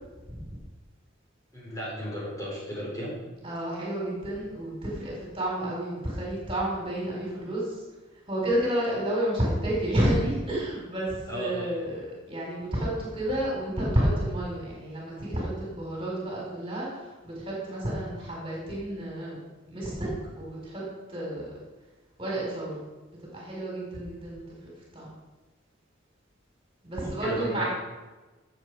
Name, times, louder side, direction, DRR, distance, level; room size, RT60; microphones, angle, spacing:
voice 1, 1.5-3.2 11.3-11.7 27.0-27.6, equal, 15° left, -5 dB, 4.2 m, -34 dB
voice 2, 3.4-7.8 8.3-19.4 19.7-20.1 20.4-20.8 21.1-21.5 22.2-22.7 23.2-24.5 24.9-25.1 26.8-27.6, right 1 dB, 25° right, -4 dB, 4.5 m, -30 dB
16.5 x 7.8 x 4.9 m, 1.2 s
head